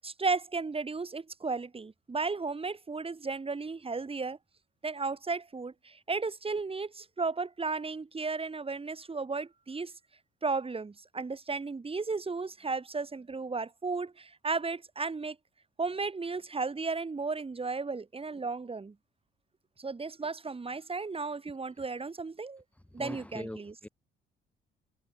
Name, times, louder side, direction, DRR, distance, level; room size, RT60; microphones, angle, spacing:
voice 1, 0.0-4.4 4.8-9.9 10.4-15.4 15.8-18.9 19.8-22.6 22.9-23.7, right 4 dB, 30° right, 7.7 m, -34 dB
voice 2, 23.0-23.9, left 1 dB, 5° left, 2.9 m, -41 dB
cardioid pair, 90°, 20 cm